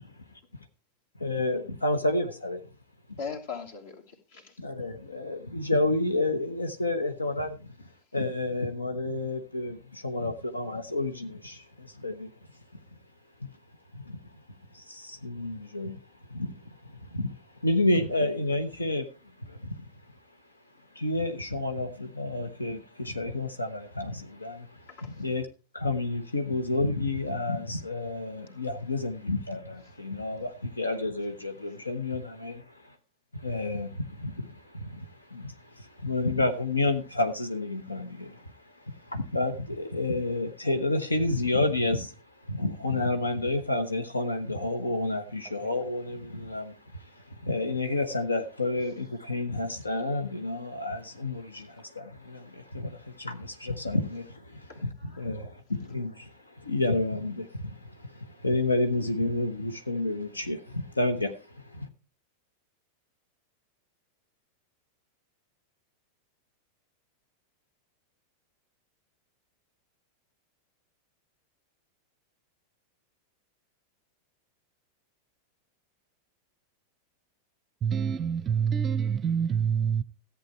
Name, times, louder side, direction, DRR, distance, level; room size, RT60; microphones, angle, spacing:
voice 1, 1.2-2.6 4.6-7.9 8.1-12.3 13.9-14.2 14.7-16.0 16.3-17.3 17.6-19.1 19.4-19.9 20.9-25.5 25.7-32.9 33.3-42.1 42.4-61.9, left 2 dB, 80° left, 1.1 m, -30 dB
voice 2, 3.2-4.6 18.0-18.1 24.9-25.3 54.7-55.5, left 5 dB, 55° left, 2.9 m, -41 dB
voice 3, 77.8-80.0, right 7 dB, 25° right, 0.6 m, -26 dB
14.5 x 8.5 x 4.6 m
figure-of-eight pair, 90°, 0 cm